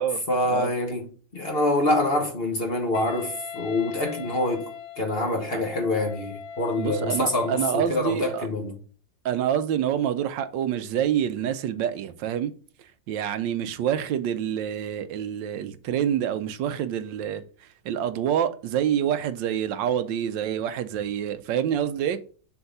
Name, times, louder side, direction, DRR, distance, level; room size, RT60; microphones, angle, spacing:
voice 1, 0.3-4.7 5.0-8.8, left 2 dB, 35° left, 1.1 m, -26 dB
Wind instrument woodwind instrument, 2.9-7.9, left 6 dB, 90° left, 1.5 m, -40 dB
voice 2, 6.8-8.5 9.2-12.5 13.1-17.4 17.8-22.2, right 9 dB, 85° right, 1.3 m, -27 dB
7.1 x 3.6 x 5.4 m
omnidirectional pair, 2.0 m